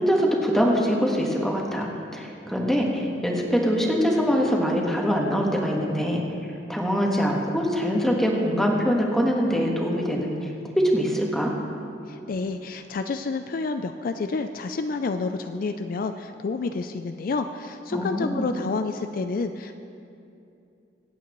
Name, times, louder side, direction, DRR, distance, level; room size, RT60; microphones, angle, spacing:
voice 1, 0.0-6.2 6.7-10.4 10.8-11.5 17.9-18.5, equal, ahead, -1 dB, 1.5 m, -23 dB
voice 2, 12.1-19.7, left 4 dB, 50° left, 8 dB, 0.4 m, -29 dB
25.0 x 8.5 x 3.1 m, 2.7 s
head